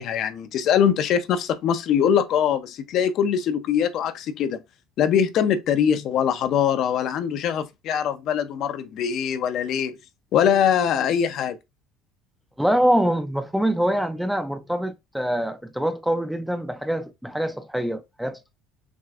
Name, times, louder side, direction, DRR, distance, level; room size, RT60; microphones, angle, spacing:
voice 1, 0.0-4.6 5.0-10.0 10.3-11.6, left 8 dB, 50° left, 0.5 m, -22 dB
voice 2, 12.6-18.6, equal, ahead, 0.4 m, -24 dB
6.0 x 2.5 x 2.4 m
cardioid pair, 135°, 0 cm